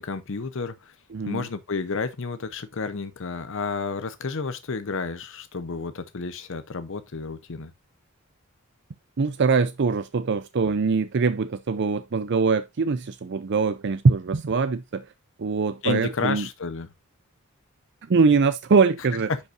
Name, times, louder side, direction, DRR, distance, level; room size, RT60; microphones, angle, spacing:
voice 1, 0.0-0.9 1.2-7.7 15.8-16.9 19.3-19.4, left 4 dB, 60° left, 0.7 m, -31 dB
voice 2, 1.1-1.5 9.2-15.1 15.4-16.5 18.1-19.3, right 4 dB, 50° right, 0.5 m, -22 dB
10.5 x 5.4 x 2.6 m
head